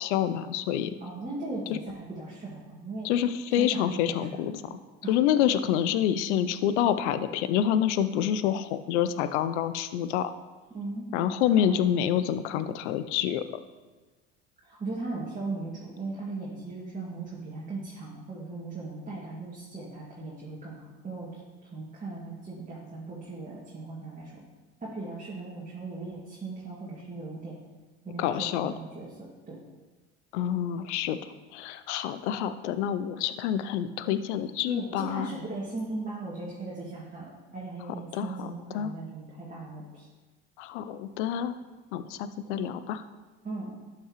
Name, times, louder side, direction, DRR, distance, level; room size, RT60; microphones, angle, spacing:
voice 1, 0.0-1.0 1.7-1.8 3.0-4.6 5.1-10.3 11.1-13.6 28.2-28.7 30.3-31.2 31.5-35.3 38.1-38.5 38.7-38.9 40.6-41.5 41.9-43.0, left 10 dB, 70° left, 12 dB, 0.6 m, -27 dB
voice 2, 1.0-3.1 3.6-4.5 5.0-5.2 10.7-11.1 11.6-11.7 14.7-20.7 21.0-21.4 21.7-24.4 24.8-27.5 28.0-29.6 34.6-40.1 43.4-43.7, right 3 dB, 20° right, -6 dB, 2.1 m, -38 dB
12.0 x 5.8 x 3.0 m, 1.3 s
hypercardioid pair, 65°, 36 cm